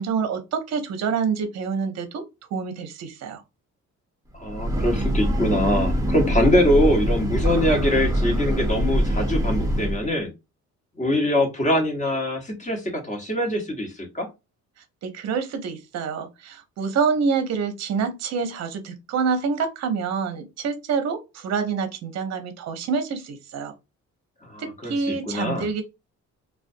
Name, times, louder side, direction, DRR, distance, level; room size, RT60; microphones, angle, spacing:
voice 1, 0.0-2.2 2.5-3.4 15.0-23.7 24.6-25.8, right 5 dB, 60° right, 0.6 m, -27 dB
Breathing / Train, 4.3-10.1, equal, 10° right, 0.7 m, -24 dB
voice 2, 4.4-10.3 11.0-14.3 24.5-25.7, left 1 dB, 25° left, 1.0 m, -23 dB
2.4 x 2.2 x 2.5 m
cardioid pair, 90°, 30 cm